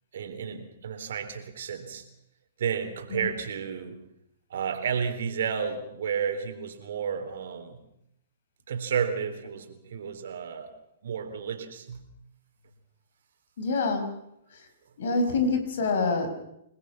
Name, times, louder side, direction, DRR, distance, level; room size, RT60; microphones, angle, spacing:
voice 1, 0.1-2.0 2.6-4.0 4.5-7.8 8.7-10.7 11.0-12.1, right 7 dB, 65° right, 7 dB, 3.8 m, -32 dB
voice 2, 13.6-14.1 14.5-14.7 15.0-16.4, left 3 dB, 65° left, 7 dB, 5.7 m, -26 dB
29.0 x 20.5 x 5.9 m, 0.80 s
hypercardioid pair, 120°, 0 cm